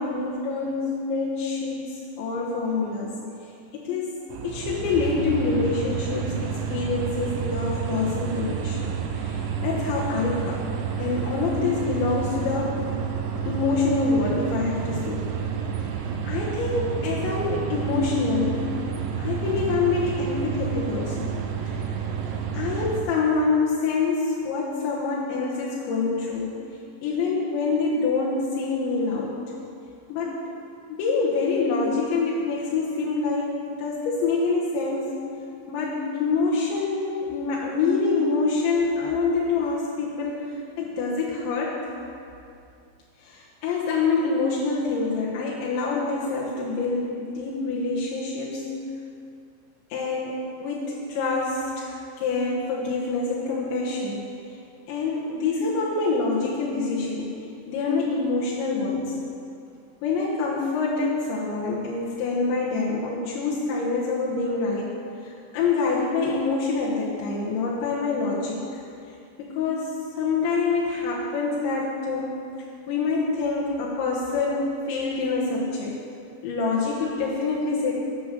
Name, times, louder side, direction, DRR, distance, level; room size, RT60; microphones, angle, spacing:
voice 1, 0.0-3.1 3.7-10.6 11.0-12.9 13.5-15.3 16.2-18.7 19.2-21.3 21.7-21.8 22.5-26.6 27.0-29.4 30.1-30.5 30.9-35.2 35.7-41.8 43.2-48.7 49.9-54.3 54.9-57.3 57.7-59.2 60.0-64.9 65.2-68.8 69.4-72.4 72.9-76.0 76.4-77.9, left 4 dB, 80° left, -5 dB, 3.6 m, -26 dB
sound 1, 4.3-23.0, right 7 dB, 90° right, 3.3 m, -30 dB
11.0 x 8.1 x 6.6 m, 2.5 s
omnidirectional pair, 5.2 m